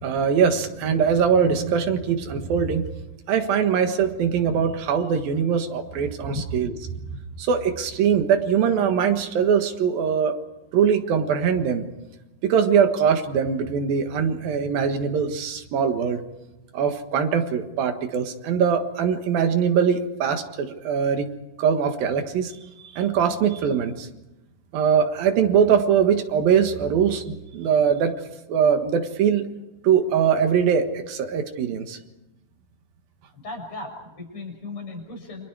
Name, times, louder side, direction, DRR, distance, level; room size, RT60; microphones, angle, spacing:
voice 1, 0.0-2.9 3.3-6.7 7.4-10.4 10.7-11.8 12.4-16.2 16.7-21.3 21.6-22.5 22.8-24.1 24.7-28.1 28.5-29.5 29.8-32.0, right 7 dB, 80° right, 6 dB, 3.4 m, -22 dB
voice 2, 33.3-35.5, left 3 dB, 35° left, 1 dB, 7.1 m, -36 dB
29.5 x 26.5 x 4.8 m, 1.0 s
omnidirectional pair, 4.1 m